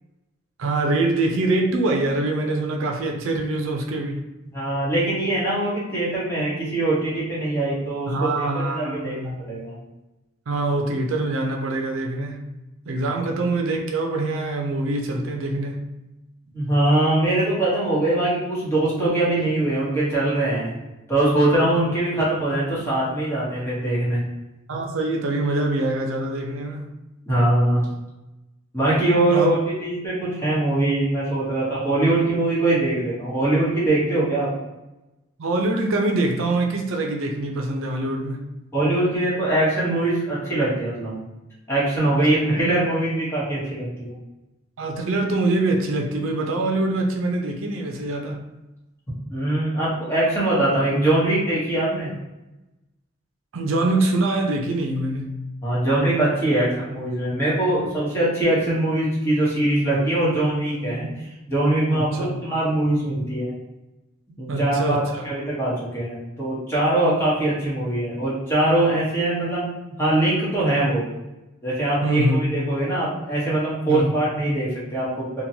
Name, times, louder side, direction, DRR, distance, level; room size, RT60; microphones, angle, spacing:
voice 1, 0.6-4.2 8.1-9.4 10.5-12.5 12.9-15.8 24.7-26.9 29.3-29.5 35.4-38.5 42.0-42.7 44.8-48.4 53.5-55.4 61.9-62.3 64.5-65.3 72.0-72.4 73.9-74.2, right 2 dB, 75° right, 2 dB, 0.4 m, -24 dB
voice 2, 4.5-9.1 9.5-9.8 16.5-20.7 21.1-24.2 27.3-27.8 28.7-29.6 29.8-34.5 38.7-41.2 41.7-44.1 49.3-52.1 55.6-61.1 61.5-63.5 64.4-69.7 70.0-71.1 71.6-75.4, right 1 dB, 10° left, -9 dB, 1.0 m, -22 dB
2.9 x 2.2 x 2.7 m, 1.0 s
head